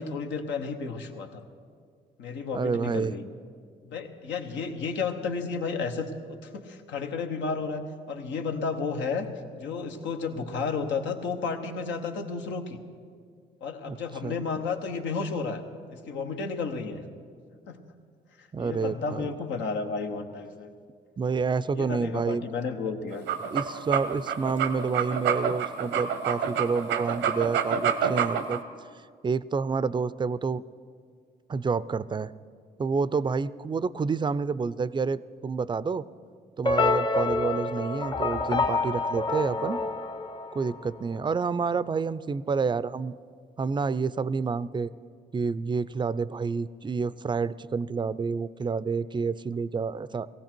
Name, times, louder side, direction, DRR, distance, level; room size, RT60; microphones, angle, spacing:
voice 1, 0.0-1.4 2.2-3.2 3.8-9.3 9.5-12.8 13.6-15.6 15.9-17.0 17.7-17.8 18.6-20.7 21.7-23.2 39.5-39.6, left 4 dB, 80° left, 5 dB, 1.1 m, -32 dB
voice 2, 2.5-3.2 13.8-14.0 14.2-14.3 18.5-19.3 21.2-22.5 23.5-28.6 29.2-30.6 31.5-32.3 32.8-36.0 36.6-39.8 40.5-43.1 43.6-44.9 45.3-50.3, right 5 dB, 25° right, 18 dB, 0.4 m, -29 dB
sound 1, 23.1-28.6, right 8 dB, 90° right, 0.9 m, -27 dB
sound 2, 36.6-41.0, left 3 dB, 25° left, 0.7 m, -27 dB
18.0 x 15.5 x 4.5 m, 2.1 s
supercardioid pair, 70°, 18 cm